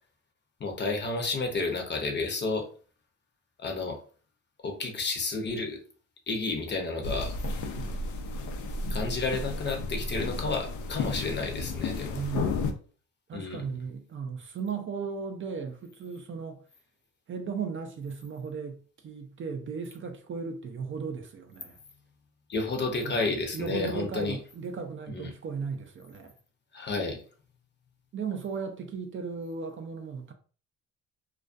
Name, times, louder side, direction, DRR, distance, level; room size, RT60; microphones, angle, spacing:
voice 1, 0.6-2.7 3.6-4.0 4.6-5.8 6.3-7.4 8.9-12.2 13.3-13.6 22.5-24.4 25.1-25.3 26.7-27.2, left 3 dB, 35° left, 0.6 m, -31 dB
sound 1, 7.0-12.7, left 3 dB, 75° left, 0.5 m, -33 dB
voice 2, 12.1-12.7 13.3-16.6 17.3-21.8 23.0-23.2 23.5-26.3 28.1-30.3, right 5 dB, 40° right, 0.4 m, -36 dB
2.3 x 2.2 x 2.5 m
cardioid pair, 90°, 30 cm